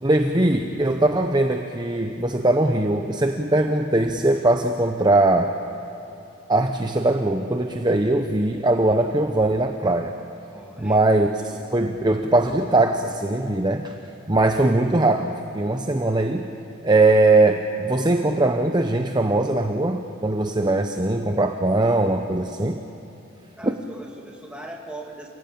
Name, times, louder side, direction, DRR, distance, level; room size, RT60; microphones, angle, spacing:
voice 1, 0.0-5.5 6.5-10.1 10.8-13.9 14.3-16.5 16.8-22.8 23.6-23.7, right 2 dB, 20° right, 5 dB, 0.9 m, -21 dB
voice 2, 10.5-11.2 23.6-25.3, right 1 dB, 5° right, 0 dB, 2.6 m, -40 dB
28.0 x 17.5 x 8.8 m, 3.0 s
head